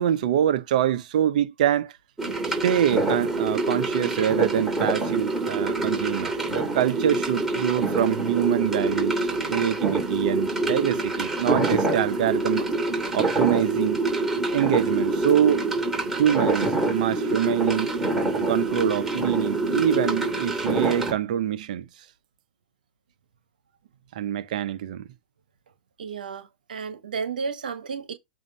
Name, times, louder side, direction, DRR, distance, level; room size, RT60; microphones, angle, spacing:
voice 1, 0.0-1.9 2.6-12.7 13.1-14.0 14.5-15.6 16.2-17.9 18.5-21.9 24.1-25.0, right 10 dB, 65° right, 0.9 m, -25 dB
sound 1, 2.2-21.1, right 2 dB, 10° right, 2.6 m, -26 dB
voice 2, 26.0-28.1, right 5 dB, 80° right, 1.2 m, -32 dB
7.7 x 2.8 x 5.5 m
hypercardioid pair, 115°, 5 cm